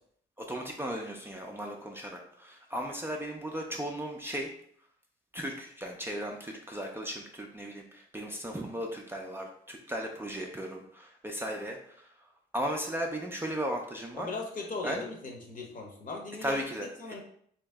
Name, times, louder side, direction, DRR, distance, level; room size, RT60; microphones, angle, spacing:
voice 1, 0.5-4.5 5.3-12.1 12.5-14.3 14.8-15.0 16.4-16.9, equal, 10° right, 0 dB, 0.5 m, -36 dB
voice 2, 14.2-16.6 17.0-17.2, left 3 dB, 40° left, 0 dB, 0.9 m, -38 dB
3.0 x 2.8 x 3.4 m, 0.64 s
cardioid pair, 90°, 20 cm